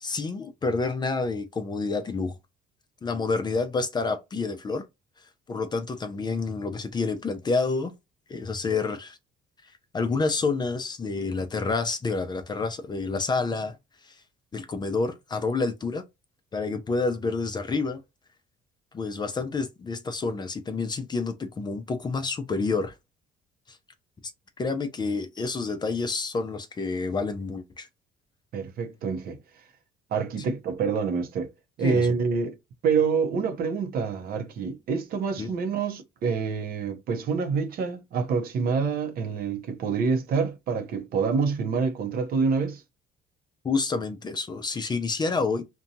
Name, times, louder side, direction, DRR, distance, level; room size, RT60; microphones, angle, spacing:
voice 1, 0.0-2.4 3.0-4.9 5.5-7.9 8.3-9.2 9.9-13.8 14.0-14.2 14.5-16.0 16.5-18.0 18.9-22.9 23.7-23.8 24.6-27.9 31.8-32.1 35.4-35.5 43.6-45.6, left 4 dB, 25° left, 0.5 m, -28 dB
voice 2, 28.5-29.4 30.1-31.5 31.8-32.5 32.8-42.8, right 5 dB, 60° right, 0.6 m, -27 dB
2.7 x 2.2 x 2.6 m
cardioid pair, 110°, 17 cm